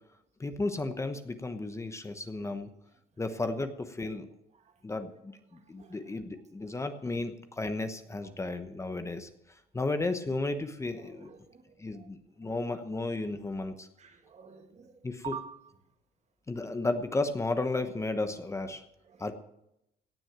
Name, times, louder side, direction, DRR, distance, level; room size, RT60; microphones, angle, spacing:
voice 1, 0.4-2.7 3.2-4.3 4.8-9.3 9.7-11.3 11.8-13.9 15.0-15.3 16.5-18.8 19.2-19.3, left 2 dB, 15° left, 1.0 m, -33 dB
voice 2, 5.5-6.2 10.9-12.1 12.5-12.6 14.0-15.6 19.1-19.3, right 7 dB, 40° right, 1.9 m, -47 dB
17.5 x 6.2 x 9.3 m
cardioid pair, 110°, 17 cm